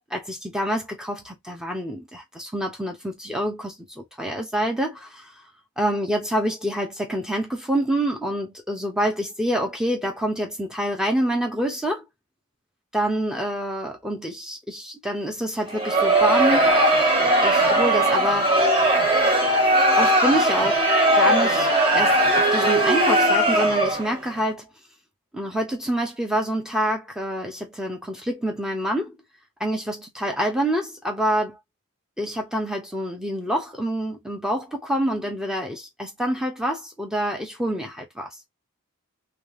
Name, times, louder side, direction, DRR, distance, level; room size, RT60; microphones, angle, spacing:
voice 1, 0.1-5.3 5.8-12.0 12.9-16.8 17.4-18.6 20.0-20.8 21.1-21.7 21.9-24.7 25.3-29.2 29.6-31.6 32.2-38.3, right 1 dB, 5° right, 1.0 m, -27 dB
Crowd, 15.7-24.2, right 1 dB, 25° right, 1.6 m, -19 dB
3.2 x 3.2 x 3.3 m
head